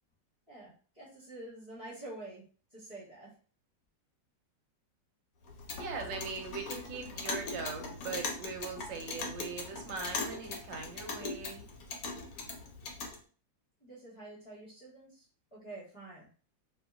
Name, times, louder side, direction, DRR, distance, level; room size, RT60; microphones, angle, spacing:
voice 1, 0.5-2.4 2.7-3.3 13.8-15.3 15.5-16.3, right 2 dB, 25° left, -8 dB, 0.7 m, -47 dB
Clock, 5.4-13.2, left 3 dB, 65° left, 0.9 m, -40 dB
voice 2, 5.8-11.6, right 5 dB, 90° right, 4 dB, 1.3 m, -40 dB
2.8 x 2.6 x 2.4 m, 0.40 s
omnidirectional pair, 2.0 m